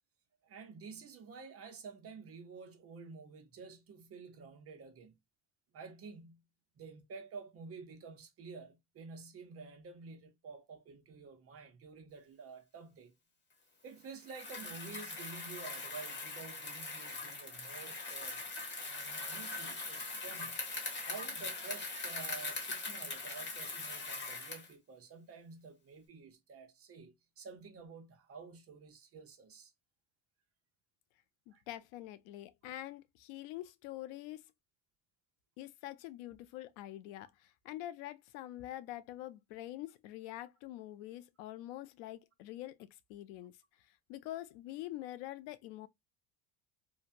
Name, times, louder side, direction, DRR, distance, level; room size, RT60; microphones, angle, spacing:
voice 1, 0.4-5.2 5.7-6.4 6.8-13.1 13.8-18.4 18.8-20.6 21.0-29.7 31.5-31.6, right 4 dB, 35° right, 0.7 m, -50 dB
Bicycle, 14.2-24.7, left 3 dB, 25° left, 1.1 m, -41 dB
voice 2, 31.5-34.4 35.6-45.9, left 14 dB, 90° left, 0.5 m, -45 dB
2.9 x 2.1 x 2.5 m
cardioid pair, 130°, 43 cm